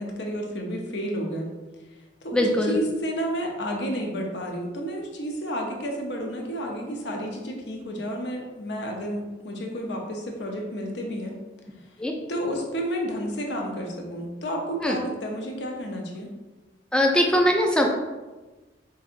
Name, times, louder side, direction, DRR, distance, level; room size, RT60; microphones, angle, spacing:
voice 1, 0.0-1.5 2.2-11.4 12.3-16.3, equal, 70° left, 1 dB, 0.6 m, -31 dB
voice 2, 2.3-2.8 12.0-12.1 14.8-15.0 16.9-17.9, equal, 5° left, 1 dB, 0.4 m, -21 dB
4.8 x 2.7 x 2.5 m, 1.2 s
head